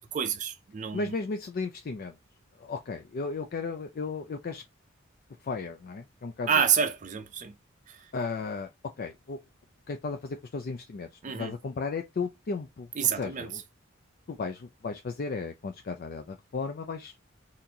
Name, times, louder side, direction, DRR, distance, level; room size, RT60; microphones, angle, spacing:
voice 1, 0.1-1.1 6.5-7.5 7.9-8.1 11.2-11.5 13.0-13.5, right 7 dB, 40° right, 0.5 m, -28 dB
voice 2, 0.9-2.2 2.6-4.6 5.4-6.5 8.1-8.7 9.0-9.4 9.9-11.1 11.4-13.6 14.3-17.1, left 4 dB, 45° left, 0.4 m, -35 dB
4.2 x 2.6 x 2.7 m
head